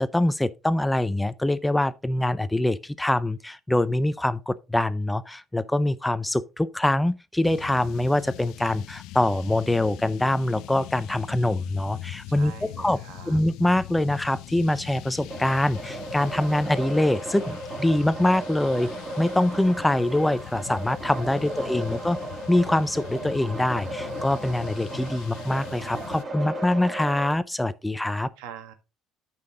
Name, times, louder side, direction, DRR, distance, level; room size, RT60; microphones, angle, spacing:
voice 1, 0.0-12.5 12.8-13.0 13.3-18.9 19.2-22.2 22.5-28.3, left 1 dB, 5° left, 0.5 m, -24 dB
sound 1, 7.4-26.2, left 14 dB, 75° left, 0.5 m, -41 dB
voice 2, 12.3-13.4 21.6-21.9 28.4-28.7, right 8 dB, 90° right, 1.6 m, -44 dB
sound 2, 15.3-27.3, right 2 dB, 25° right, 2.2 m, -36 dB
9.5 x 5.9 x 3.8 m
cardioid pair, 125°, 0 cm